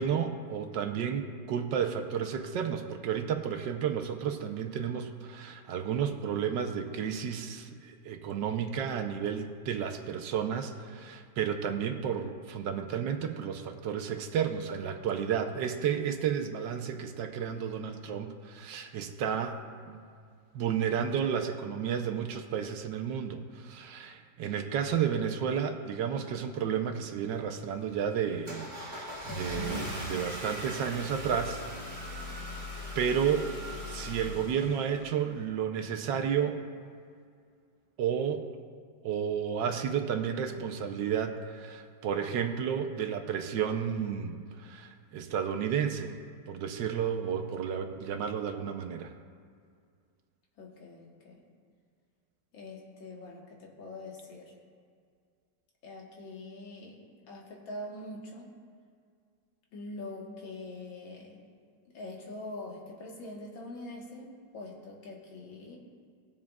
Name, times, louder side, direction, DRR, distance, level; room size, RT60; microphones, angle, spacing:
voice 1, 0.0-19.6 19.8-20.0 20.5-31.6 32.0-32.1 32.9-33.5 33.9-36.6 38.0-38.6 39.0-46.2 46.5-49.1, right 8 dB, 75° right, 5 dB, 1.3 m, -32 dB
Car / Engine starting, 27.2-35.4, left 1 dB, 15° right, 1.6 m, -39 dB
voice 2, 29.3-30.1 50.6-51.4 52.5-54.5 55.8-58.5 59.7-61.4 61.9-65.8, left 2 dB, 85° left, -2 dB, 2.2 m, -44 dB
19.5 x 7.4 x 2.4 m, 2.2 s
omnidirectional pair, 2.1 m